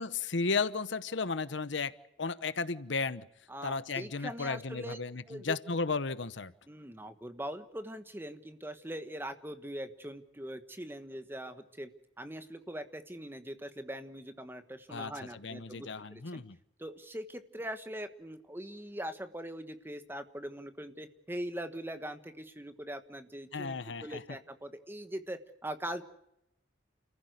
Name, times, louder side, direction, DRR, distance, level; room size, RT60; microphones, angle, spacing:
voice 1, 0.0-1.9 2.2-3.3 3.6-6.5 14.9-16.6 23.5-24.2, left 4 dB, 75° left, 15 dB, 0.9 m, -34 dB
voice 2, 3.5-5.0 5.3-5.6 6.7-11.9 12.2-16.4 16.8-26.0, right 1 dB, 10° right, 10 dB, 1.3 m, -42 dB
29.5 x 15.0 x 8.1 m, 0.81 s
head